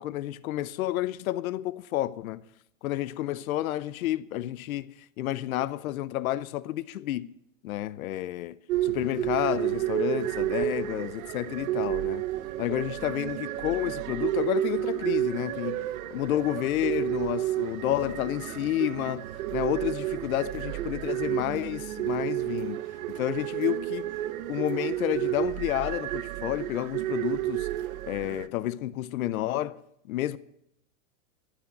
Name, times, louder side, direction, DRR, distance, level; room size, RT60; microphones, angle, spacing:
voice 1, 0.0-2.4 2.8-7.3 7.6-12.2 12.6-15.8 16.1-22.8 23.1-24.1 24.5-27.7 28.1-29.8 30.1-30.4, left 14 dB, 85° left, 0.7 m, -30 dB
sound 1, 8.7-28.5, right 14 dB, 80° right, 0.8 m, -31 dB
13.0 x 6.3 x 9.1 m
supercardioid pair, 160°, 41 cm